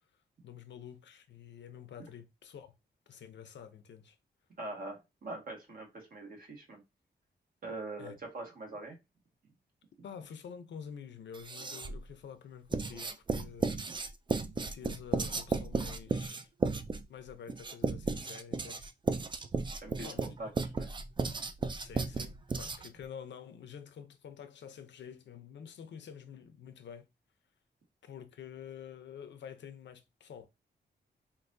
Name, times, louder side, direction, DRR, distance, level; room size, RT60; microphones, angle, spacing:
voice 1, 0.4-2.7 3.1-4.2 8.0-8.2 10.0-13.7 14.6-16.5 17.1-18.9 20.0-20.3 21.8-27.0 28.0-30.5, left 8 dB, 85° left, 0.6 m, -48 dB
voice 2, 4.6-6.8 7.6-9.0 13.9-14.0 19.8-20.9, right 2 dB, 50° right, 1.6 m, -43 dB
Writing, 11.3-12.1 12.7-23.0, right 4 dB, 25° right, 0.4 m, -34 dB
4.6 x 2.6 x 2.6 m
wide cardioid pair, 115°, 18 cm